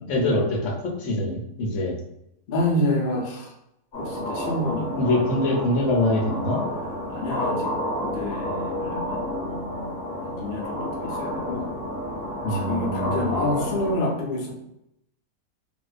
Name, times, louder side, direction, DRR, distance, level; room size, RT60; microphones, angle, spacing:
voice 1, 0.1-2.0 4.8-6.6 12.4-13.4, left 1 dB, 65° left, -1 dB, 0.8 m, -24 dB
voice 2, 2.5-3.5 4.0-5.2 7.1-7.7 8.0-9.9 10.2-11.7 12.5-14.5, left 1 dB, 80° left, -2 dB, 0.4 m, -28 dB
sound 1, 3.9-13.9, equal, 30° left, 1.0 m, -30 dB
2.4 x 2.1 x 2.4 m, 0.80 s
omnidirectional pair, 1.6 m